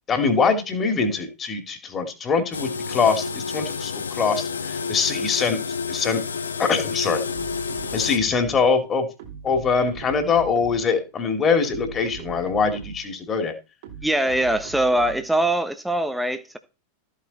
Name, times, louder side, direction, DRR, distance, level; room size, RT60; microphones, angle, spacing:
voice 1, 0.1-5.6 5.9-6.2 6.6-7.2 7.9-9.1 9.4-13.5, left 5 dB, 25° left, 2.7 m, -23 dB
sound 1, 2.5-8.2, left 5 dB, 70° left, 0.9 m, -29 dB
sound 2, 7.3-8.8 9.2-11.0 11.5-13.2 13.8-15.4, right 6 dB, 55° right, 3.5 m, -40 dB
voice 2, 14.0-16.6, right 1 dB, ahead, 1.2 m, -22 dB
14.0 x 8.5 x 4.3 m
figure-of-eight pair, 90°, 0 cm